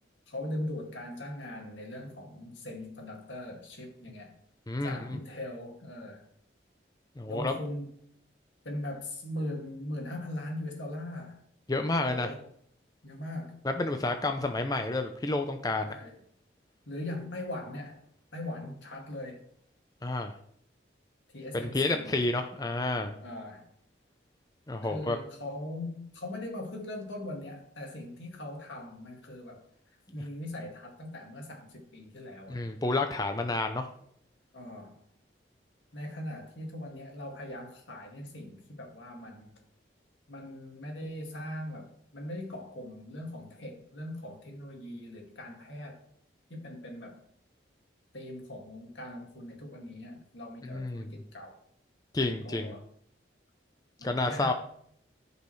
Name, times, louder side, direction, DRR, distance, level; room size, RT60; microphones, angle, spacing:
voice 1, 0.3-4.3 4.8-6.2 7.3-7.9 8.6-11.4 12.0-12.4 13.0-13.6 15.9-16.2 16.9-18.0 18.3-19.4 21.3-22.1 23.2-23.7 24.8-29.6 30.1-32.7 34.5-34.9 35.9-39.6 40.3-46.0 46.5-47.2 48.1-51.6 52.2-52.8 54.0-54.5, left 1 dB, 80° left, 1 dB, 2.1 m, -40 dB
voice 2, 4.7-5.2 7.2-7.6 11.7-12.3 13.6-15.9 20.0-20.3 21.5-23.1 24.7-25.2 30.1-30.2 32.5-33.9 50.6-51.1 52.1-52.7 54.0-54.5, left 2 dB, 20° left, 6 dB, 0.5 m, -30 dB
14.0 x 5.5 x 3.2 m, 0.67 s
head